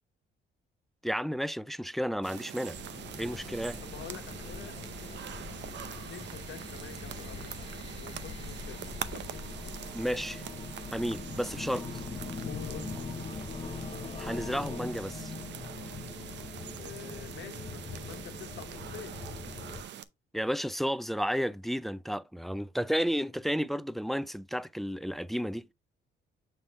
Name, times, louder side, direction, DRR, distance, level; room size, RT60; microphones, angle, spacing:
voice 1, 1.0-2.8 3.2-3.8 9.9-10.5 10.9-12.0 14.2-15.3 20.3-25.7, equal, ahead, 0.3 m, -32 dB
sound 1, 2.2-20.0, right 10 dB, 65° right, 0.6 m, -44 dB
sound 2, 2.7-19.8, left 5 dB, 30° left, 0.7 m, -42 dB
voice 2, 3.8-5.2 5.9-7.7 8.0-8.8 9.1-9.8 12.4-13.0 16.6-19.2, left 9 dB, 70° left, 1.2 m, -47 dB
sound 3, 9.1-16.9, right 11 dB, 85° right, 3.2 m, -67 dB
7.0 x 3.4 x 3.9 m
cardioid pair, 90°, 20 cm